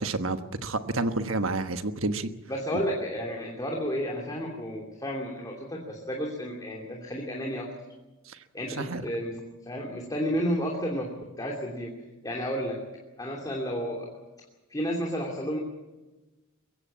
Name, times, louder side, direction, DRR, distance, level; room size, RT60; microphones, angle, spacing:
voice 1, 0.0-2.3 8.3-8.4 8.8-9.0, right 2 dB, 65° right, 9 dB, 1.3 m, -29 dB
voice 2, 2.5-7.7 8.5-9.4 9.7-11.9 12.2-12.8 13.2-14.1 14.7-15.6, equal, 20° left, -1 dB, 2.8 m, -31 dB
23.0 x 16.0 x 8.6 m, 1.1 s
head